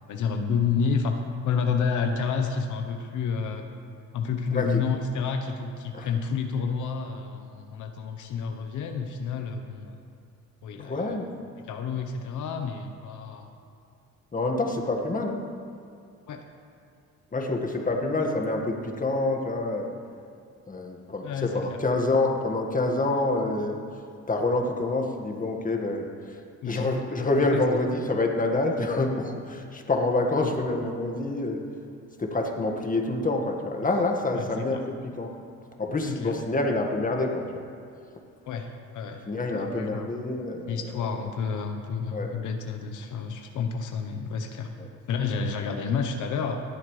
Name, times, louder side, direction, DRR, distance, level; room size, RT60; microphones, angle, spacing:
voice 1, 0.1-3.7 4.1-10.0 10.6-11.2 11.7-13.5 16.3-16.4 21.2-21.8 26.6-26.8 27.4-27.6 34.3-34.4 36.1-36.3 38.5-39.2 39.6-40.0 40.7-44.7 45.1-46.6, left 5 dB, 80° left, 5 dB, 1.0 m, -30 dB
voice 2, 4.5-4.8 5.9-6.1 10.8-11.3 14.3-15.4 17.3-19.9 20.7-23.8 24.3-26.4 26.6-31.6 32.2-35.3 35.8-37.6 39.3-41.2 42.1-42.3 44.8-44.9, left 2 dB, 25° left, 2 dB, 1.7 m, -27 dB
18.5 x 11.5 x 3.3 m, 2.5 s
cardioid pair, 90°, 30 cm